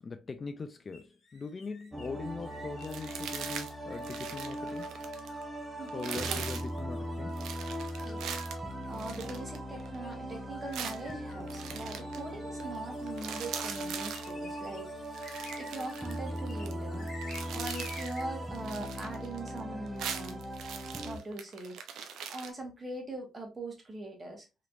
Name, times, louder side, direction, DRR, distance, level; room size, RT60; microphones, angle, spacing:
voice 1, 0.0-4.9 5.9-7.3, left 4 dB, 35° left, 0.4 m, -41 dB
sound 1, 0.9-18.6, left 3 dB, 55° left, 1.0 m, -53 dB
sound 2, 1.9-21.2, equal, 5° right, 0.8 m, -39 dB
sound 3, 2.8-3.7 4.0-5.4 5.9-6.7 7.4-10.0 10.7-12.2 12.6-12.8 13.0-14.3 15.0-16.7 17.1-18.2 18.5-19.6 19.9-22.5, right 7 dB, 80° right, 0.5 m, -41 dB
voice 2, 5.8-6.4 8.0-8.4 8.9-15.1 15.6-17.1 17.5-20.4 21.0-22.0 22.3-24.5, right 2 dB, 30° right, 1.3 m, -42 dB
3.1 x 3.0 x 2.5 m
cardioid pair, 90°, 0 cm